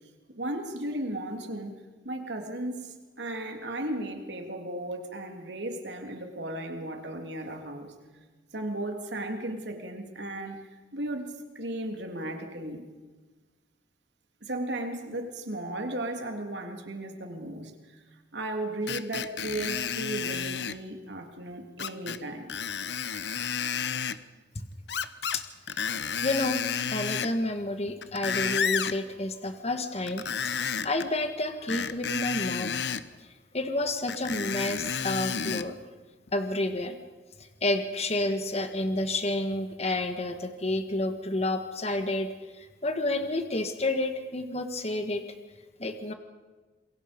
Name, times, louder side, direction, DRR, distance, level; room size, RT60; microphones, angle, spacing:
voice 1, 0.4-1.8 2.0-7.9 8.5-12.8 14.4-17.7 18.3-22.5, right 1 dB, 85° right, 4 dB, 3.1 m, -35 dB
Screech, 18.9-20.8 21.8-22.2 22.5-24.2 24.9-25.4 25.7-27.4 27.9-29.0 30.1-31.1 31.7-33.0 34.1-35.7 36.3-36.4, left 7 dB, 75° left, 0.9 m, -31 dB
voice 2, 25.3-26.6 26.9-32.8 33.2-33.3 33.5-35.8 36.3-37.0 37.4-42.3 42.5-45.2 45.8-46.1, left 2 dB, 35° left, 7 dB, 1.7 m, -30 dB
27.5 x 22.5 x 5.3 m, 1.3 s
head